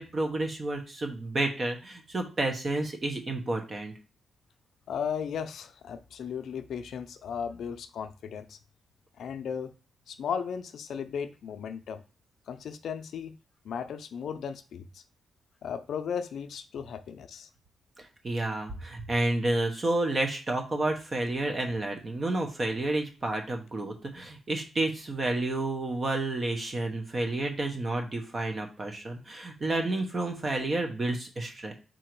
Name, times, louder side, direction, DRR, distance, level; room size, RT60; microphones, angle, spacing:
voice 1, 0.0-3.9 18.2-31.7, right 2 dB, 35° right, 1.0 m, -30 dB
voice 2, 4.9-8.6 9.2-9.7 10.1-12.0 12.5-13.3 13.6-15.0 15.6-17.5, left 7 dB, 75° left, 0.5 m, -36 dB
3.8 x 2.8 x 4.6 m
cardioid pair, 105°, 0 cm